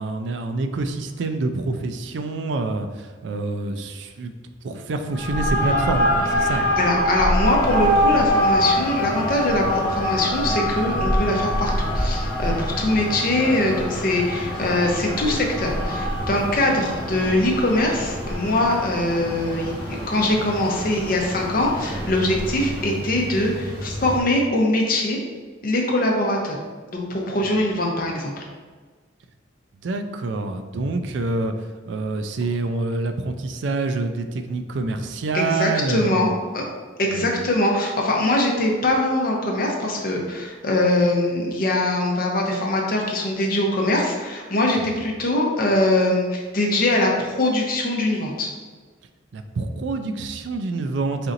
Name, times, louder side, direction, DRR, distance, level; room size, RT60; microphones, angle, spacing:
voice 1, 0.0-4.3 4.6-6.7 29.8-31.5 31.9-36.3 37.0-37.4 44.8-44.9 49.3-51.3, right 3 dB, 70° right, 7 dB, 0.4 m, -27 dB
sound 1, 5.1-23.0, equal, 10° left, 0.6 m, -25 dB
voice 2, 6.4-19.8 20.1-25.2 25.6-26.6 26.9-28.5 35.3-36.6 37.0-48.5, left 1 dB, 45° left, 0 dB, 0.7 m, -22 dB
sound 2, 7.6-24.2, equal, 25° right, 1.1 m, -34 dB
4.2 x 3.9 x 2.5 m, 1.4 s
head